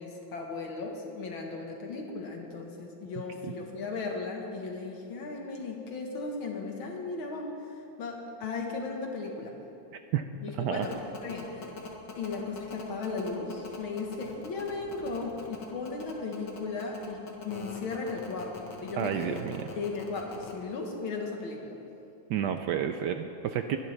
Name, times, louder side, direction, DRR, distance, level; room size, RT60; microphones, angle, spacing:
voice 1, 0.0-9.6 10.4-11.7 12.2-19.4 19.8-21.8, left 4 dB, 80° left, 1 dB, 2.3 m, -36 dB
voice 2, 10.6-10.9 19.0-19.6 22.3-23.8, right 9 dB, 75° right, 7 dB, 1.0 m, -30 dB
sound 1, 10.8-20.5, left 4 dB, 60° left, 2.0 m, -43 dB
21.5 x 11.0 x 3.4 m, 2.8 s
omnidirectional pair, 2.2 m